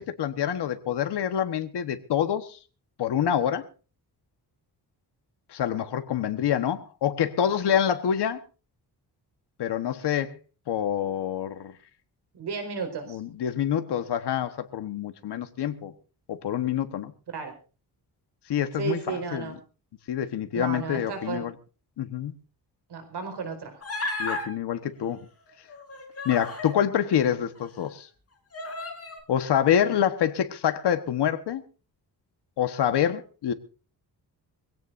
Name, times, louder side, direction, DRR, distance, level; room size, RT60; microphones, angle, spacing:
voice 1, 0.0-2.6 3.0-3.7 5.5-8.4 9.6-10.4 10.7-11.7 13.1-15.9 16.3-17.1 18.5-19.5 20.1-21.5 22.0-22.3 24.2-25.3 26.2-28.1 29.3-31.6 32.6-33.5, left 9 dB, 85° left, 1.3 m, -26 dB
voice 2, 12.3-13.2 17.3-17.5 18.8-19.6 20.5-21.4 22.9-23.8, right 5 dB, 80° right, 4.8 m, -33 dB
Human voice, 23.8-24.5 25.7-26.8 27.5-27.6 28.5-29.2, left 2 dB, 35° left, 4.0 m, -33 dB
23.0 x 17.0 x 2.6 m
wide cardioid pair, 130°, 39 cm